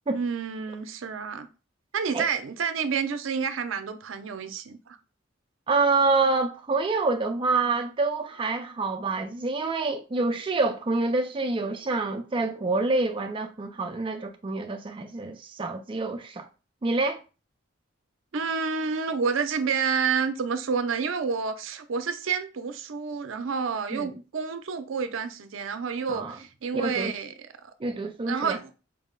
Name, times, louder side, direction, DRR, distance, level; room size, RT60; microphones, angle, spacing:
voice 1, 0.1-1.5 1.9-5.0 18.3-27.3 27.6-27.7 28.3-28.7, right 5 dB, 80° right, 0.5 m, -29 dB
voice 2, 5.7-16.5 16.8-17.2 23.9-24.1 26.1-26.3 26.8-27.1 27.8-28.6, right 3 dB, 25° right, 0.4 m, -27 dB
4.7 x 2.1 x 3.7 m
head